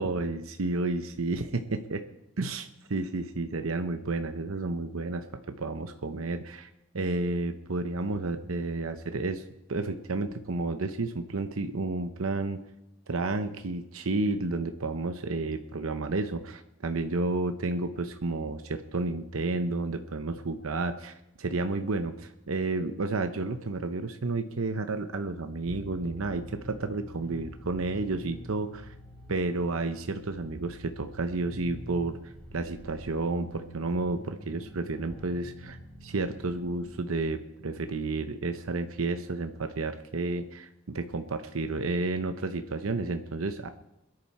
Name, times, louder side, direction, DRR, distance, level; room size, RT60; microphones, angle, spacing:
voice 1, 0.0-2.0 2.4-9.4 9.7-12.6 13.1-28.9 29.3-43.7, right 3 dB, 80° right, 8 dB, 0.8 m, -31 dB
sound 1, 25.6-36.9, equal, 5° left, 7.5 m, -47 dB
22.0 x 10.5 x 4.3 m, 0.86 s
head